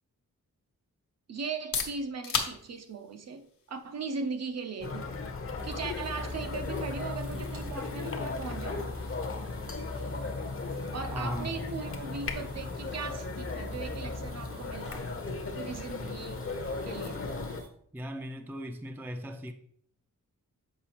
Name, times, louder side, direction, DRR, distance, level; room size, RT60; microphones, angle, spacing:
voice 1, 1.3-5.1 5.6-9.0 10.9-15.1 15.6-16.4 16.8-17.2, right 4 dB, 50° right, 0.6 m, -38 dB
sound 1, 1.4-17.1, left 5 dB, 75° left, 1.0 m, -43 dB
sound 2, 4.8-17.6, left 3 dB, 40° left, 0.7 m, -36 dB
sound 3, 5.6-17.7, right 3 dB, 80° right, 1.2 m, -52 dB
voice 2, 11.1-11.6 16.0-16.2 17.9-19.5, equal, 5° right, 0.4 m, -38 dB
6.8 x 4.8 x 2.9 m
wide cardioid pair, 150°, 33 cm